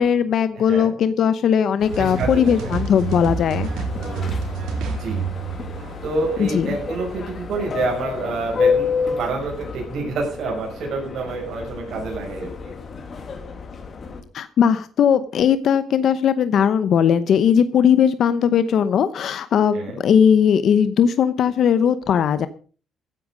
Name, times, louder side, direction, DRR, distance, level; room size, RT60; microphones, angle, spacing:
voice 1, 0.0-3.7 6.4-6.7 14.3-22.5, left 8 dB, 55° left, 13 dB, 0.8 m, -18 dB
voice 2, 0.5-0.9 2.0-2.8 4.9-5.2 6.0-12.7 19.7-20.0, right 3 dB, 60° right, -1 dB, 6.0 m, -28 dB
Subway metro underground, 1.8-14.2, left 5 dB, 35° left, 2.3 m, -30 dB
sound 1, 1.9-6.8, right 5 dB, 85° right, 3.9 m, -28 dB
15.5 x 10.0 x 5.2 m, 0.38 s
cardioid pair, 145°, 0 cm